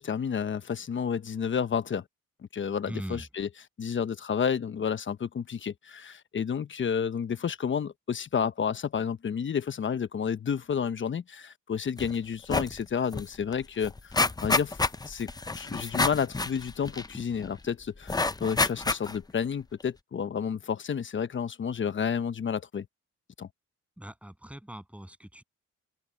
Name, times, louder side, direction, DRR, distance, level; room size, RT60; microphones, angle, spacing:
voice 1, 0.0-2.0 2.5-3.5 3.8-14.2 14.4-14.8 15.1-15.3 15.5-22.9 23.4-23.5, left 7 dB, 40° left, 1.1 m, -30 dB
voice 2, 2.8-3.2 24.0-25.4, right 1 dB, 5° right, 8.0 m, -40 dB
sound 1, 12.0-12.1 12.4-12.8 13.1-13.2 13.5-17.5 18.1-19.3 19.8-19.9, left 3 dB, 15° left, 0.7 m, -28 dB
cardioid pair, 90°, 30 cm